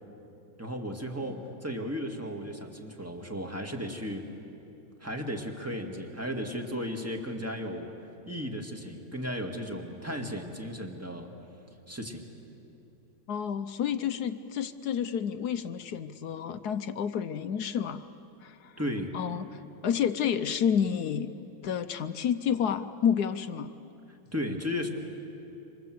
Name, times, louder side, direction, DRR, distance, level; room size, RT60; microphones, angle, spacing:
voice 1, 0.6-4.3 5.0-7.9 8.3-11.3 11.9-12.2 18.8-19.1 24.3-24.9, equal, 10° right, 3 dB, 1.9 m, -35 dB
voice 2, 13.3-18.1 18.4-18.8 19.1-21.3 21.6-23.7, left 8 dB, 65° left, 11 dB, 1.1 m, -30 dB
27.0 x 26.0 x 7.9 m, 2.9 s
omnidirectional pair, 2.2 m